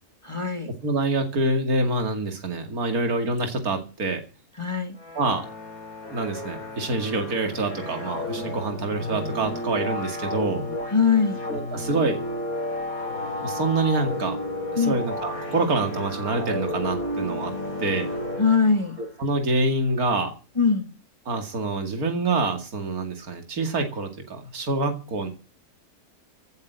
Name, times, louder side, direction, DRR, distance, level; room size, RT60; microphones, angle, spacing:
voice 1, 0.2-0.7 4.6-5.0 10.9-11.4 14.8-15.0 18.4-19.0 20.6-20.9, left 5 dB, 20° left, 7 dB, 1.6 m, -21 dB
voice 2, 0.8-4.2 5.1-5.4 6.1-10.6 11.5-12.2 13.4-14.4 14.7-17.5 17.8-18.1 19.0-20.3 21.3-25.3, right 3 dB, 70° right, 5 dB, 2.8 m, -26 dB
sound 1, 5.0-19.1, left 1 dB, 65° left, 4.2 m, -32 dB
16.5 x 7.2 x 9.1 m, 0.36 s
omnidirectional pair, 1.6 m